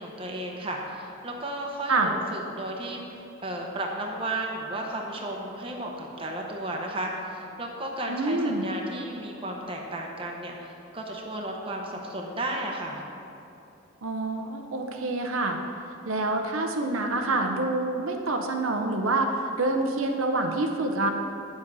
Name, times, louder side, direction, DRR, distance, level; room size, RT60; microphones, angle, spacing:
voice 1, 0.0-13.0, right 1 dB, 25° right, 0 dB, 0.9 m, -34 dB
voice 2, 8.1-8.7 14.0-15.6 16.0-21.1, right 2 dB, 75° right, 3 dB, 0.7 m, -27 dB
9.3 x 7.4 x 4.7 m, 2.8 s
head